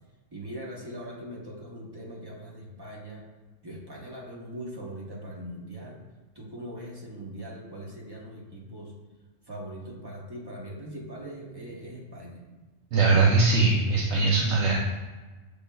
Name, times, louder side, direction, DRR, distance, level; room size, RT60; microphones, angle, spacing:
voice 1, 0.3-3.3 3.6-6.0 6.3-8.9 9.5-12.4, right 1 dB, 30° right, -3 dB, 0.4 m, -41 dB
voice 2, 12.9-14.7, right 3 dB, 70° right, -3 dB, 0.9 m, -21 dB
6.8 x 3.1 x 2.2 m, 1.2 s
omnidirectional pair, 1.3 m